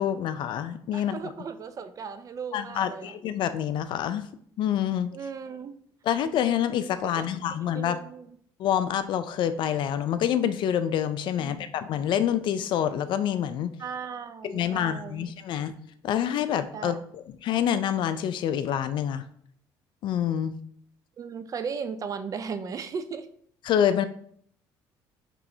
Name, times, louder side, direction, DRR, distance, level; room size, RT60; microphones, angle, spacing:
voice 1, 0.0-1.3 2.5-4.3 4.6-5.1 6.0-8.0 8.6-13.7 14.4-15.7 16.0-19.2 20.0-20.6 23.6-24.1, left 9 dB, 60° left, 12 dB, 0.4 m, -27 dB
voice 2, 0.9-3.2 5.1-5.8 7.7-8.4 11.4-11.7 13.8-15.3 16.7-17.0 21.2-23.3, right 6 dB, 40° right, 10 dB, 0.4 m, -36 dB
5.5 x 3.1 x 2.7 m, 0.63 s
cardioid pair, 95°, 9 cm